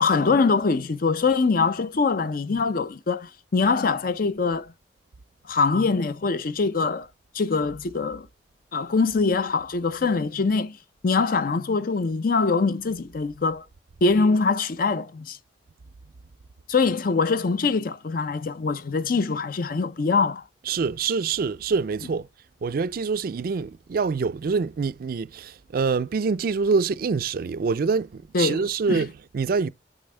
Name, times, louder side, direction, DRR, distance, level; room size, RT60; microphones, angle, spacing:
voice 1, 0.0-4.7 5.5-7.1 7.3-8.3 8.7-10.8 11.0-13.6 14.0-15.4 16.7-20.4 28.3-29.0, left 4 dB, 55° left, 0.5 m, -23 dB
voice 2, 20.7-22.3 22.6-29.7, right 5 dB, 55° right, 0.4 m, -25 dB
8.7 x 4.2 x 3.3 m
head